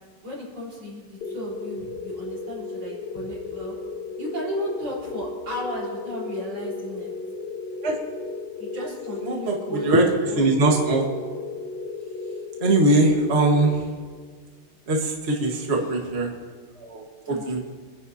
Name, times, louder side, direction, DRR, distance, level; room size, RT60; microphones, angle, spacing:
voice 1, 0.2-3.7 4.2-7.1 8.6-10.4 15.7-16.1 17.2-17.6, equal, 70° right, -5 dB, 5.1 m, -34 dB
sound 1, 1.2-14.3, left 3 dB, 65° left, 1.2 m, -35 dB
voice 2, 9.3-9.6 9.8-10.0 10.4-11.0 12.6-13.8 14.9-16.3 16.8-17.6, right 2 dB, 30° right, -1 dB, 1.6 m, -21 dB
26.5 x 10.5 x 2.8 m, 1.5 s
omnidirectional pair, 2.4 m